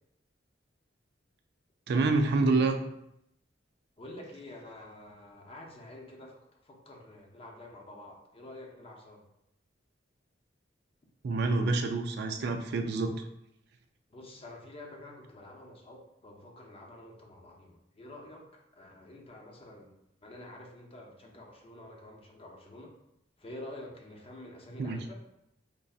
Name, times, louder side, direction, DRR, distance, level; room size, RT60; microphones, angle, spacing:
voice 1, 1.9-2.9 11.2-13.2 24.8-25.0, right 3 dB, 60° right, 6 dB, 0.4 m, -27 dB
voice 2, 4.0-9.2 14.1-20.0 20.2-23.0 23.4-25.2, left 1 dB, 30° left, 0 dB, 0.6 m, -48 dB
5.3 x 2.6 x 2.3 m, 0.80 s
head